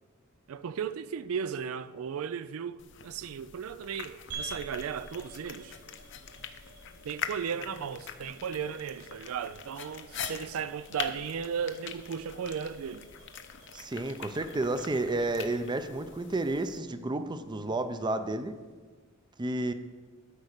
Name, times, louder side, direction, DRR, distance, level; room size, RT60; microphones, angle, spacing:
voice 1, 0.5-5.8 7.0-13.1, right 7 dB, 85° right, 0.4 m, -35 dB
sound 1, 2.8-16.8, left 7 dB, 60° left, 0.7 m, -44 dB
sound 2, 4.3-18.9, right 3 dB, 65° right, 3.8 m, -51 dB
voice 2, 13.7-18.5 19.4-19.7, right 2 dB, 20° right, 0.5 m, -31 dB
12.5 x 4.8 x 6.6 m
head